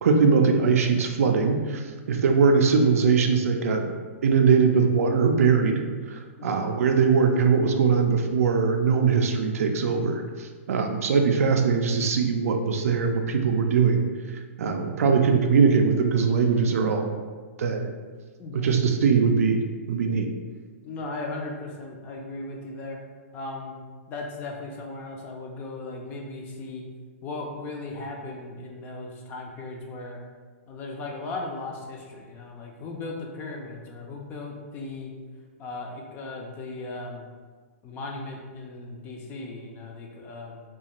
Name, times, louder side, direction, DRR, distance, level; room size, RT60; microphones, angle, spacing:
voice 1, 0.0-1.8 2.1-3.9 4.2-14.0 14.6-17.1 17.6-17.9 18.5-20.3, right 5 dB, 80° right, 4 dB, 0.4 m, -21 dB
voice 2, 18.4-18.7 20.8-23.0 23.3-23.8 24.1-26.8 27.2-30.2 30.7-35.1 35.6-37.3 37.8-40.6, left 2 dB, 20° left, 0 dB, 0.3 m, -37 dB
2.4 x 2.3 x 2.9 m, 1.5 s
hypercardioid pair, 155°, 8 cm